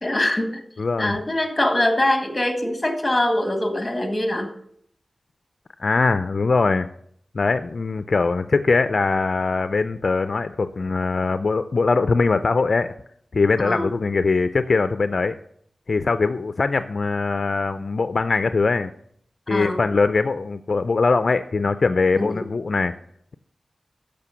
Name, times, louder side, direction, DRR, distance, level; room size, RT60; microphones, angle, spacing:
voice 1, 0.0-0.6 1.0-4.5 13.6-13.9 19.5-19.8 22.1-22.4, left 1 dB, 15° left, 6 dB, 1.8 m, -23 dB
voice 2, 0.8-1.2 5.8-6.9 7.3-12.9 13.3-15.4 15.9-18.9 19.5-22.9, left 4 dB, 55° left, 12 dB, 0.4 m, -21 dB
13.0 x 5.1 x 7.0 m, 0.67 s
wide cardioid pair, 110°, 0 cm